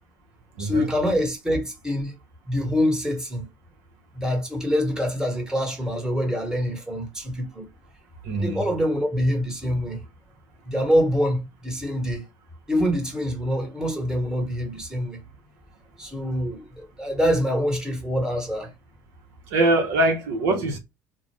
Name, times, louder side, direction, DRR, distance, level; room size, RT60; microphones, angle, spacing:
voice 1, 0.6-2.2 2.5-3.5 4.1-7.7 8.3-10.0 10.6-12.2 12.7-15.2 16.0-18.7, equal, 5° right, 1.3 m, -25 dB
voice 2, 8.2-8.6 19.5-20.8, right 2 dB, 70° right, 0.8 m, -22 dB
2.4 x 2.1 x 3.3 m
hypercardioid pair, 70°, 9 cm